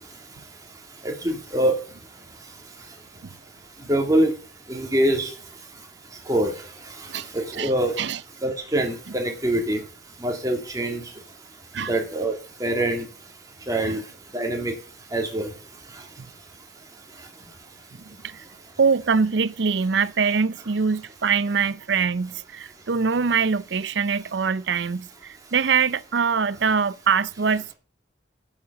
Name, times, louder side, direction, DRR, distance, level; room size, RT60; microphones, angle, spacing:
voice 1, 1.0-1.8 3.9-4.3 4.7-5.3 6.3-6.5 7.3-7.9 8.4-9.8 10.2-11.0 11.9-12.3 12.6-13.1 13.7-14.0 14.3-14.7 15.1-15.5, right 1 dB, 20° right, 2.5 m, -23 dB
voice 2, 18.8-27.7, right 5 dB, 65° right, 0.6 m, -23 dB
11.0 x 7.4 x 6.6 m
head